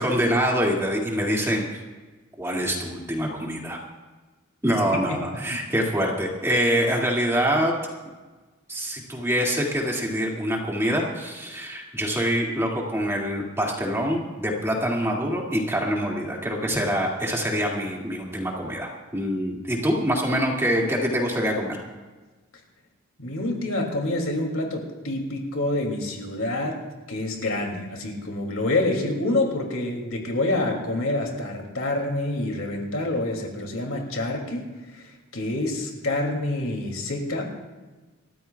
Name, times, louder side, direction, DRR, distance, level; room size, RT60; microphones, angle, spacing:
voice 1, 0.0-1.6 2.4-3.8 4.6-7.8 8.7-21.8, equal, 10° right, -2 dB, 2.2 m, -25 dB
voice 2, 23.2-26.8 27.1-37.5, left 2 dB, 70° left, 1 dB, 2.7 m, -27 dB
28.0 x 13.5 x 2.4 m, 1.3 s
head